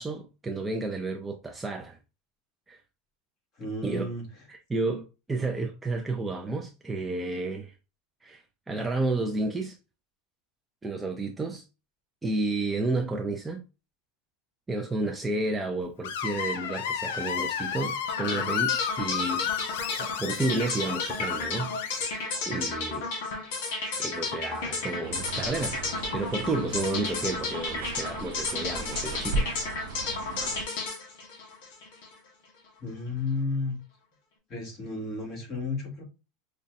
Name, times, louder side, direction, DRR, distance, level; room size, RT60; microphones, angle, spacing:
voice 1, 0.0-2.0 2.7-2.8 3.8-4.1 4.5-7.7 8.2-9.8 10.8-11.6 12.2-13.6 14.7-19.5 20.0-21.7 22.5-23.1 24.0-25.8 26.1-29.5, right 2 dB, 10° right, 0.4 m, -31 dB
voice 2, 3.6-4.3 32.8-33.8 34.5-36.0, left 3 dB, 30° left, 1.6 m, -32 dB
Screech, 16.0-22.1, left 8 dB, 80° left, 0.4 m, -32 dB
sound 1, 18.1-32.2, left 3 dB, 65° left, 1.3 m, -33 dB
sound 2, 25.0-30.6, right 3 dB, 90° right, 0.4 m, -36 dB
5.3 x 2.2 x 2.5 m
supercardioid pair, 165°, 0 cm